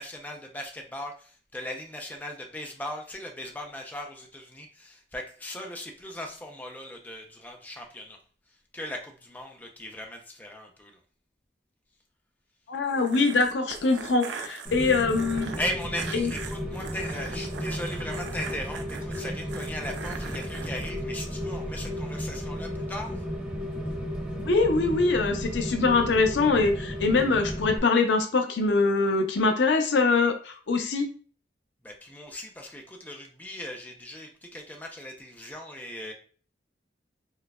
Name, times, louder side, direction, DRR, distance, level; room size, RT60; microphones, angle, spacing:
voice 1, 0.0-8.2 8.7-11.0 15.6-23.2 31.8-36.1, left 1 dB, 10° left, 2 dB, 0.4 m, -38 dB
voice 2, 12.7-15.5 16.1-16.3 24.4-31.1, left 3 dB, 85° left, 6 dB, 0.5 m, -23 dB
sound 1, 12.7-20.9, right 5 dB, 85° right, 0.4 m, -41 dB
Rain, 14.6-27.8, equal, 10° right, 0.9 m, -34 dB
4.6 x 2.2 x 2.2 m, 0.41 s
head